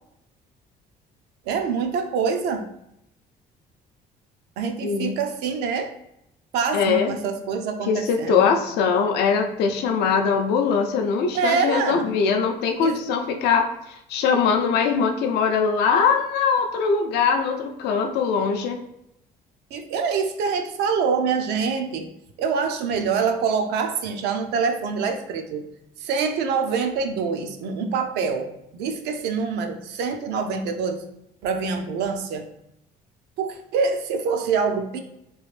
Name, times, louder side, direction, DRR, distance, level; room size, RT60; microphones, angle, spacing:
voice 1, 1.5-2.7 4.6-5.9 6.5-8.5 11.3-12.1 12.8-13.0 19.7-22.1 22.4-25.7 26.0-31.0 31.4-32.4 33.4-35.0, right 5 dB, 85° right, 6 dB, 0.5 m, -25 dB
voice 2, 4.8-5.2 6.7-7.1 7.9-18.8, left 5 dB, 80° left, 5 dB, 0.5 m, -22 dB
3.1 x 2.5 x 3.1 m, 0.80 s
cardioid pair, 110°, 17 cm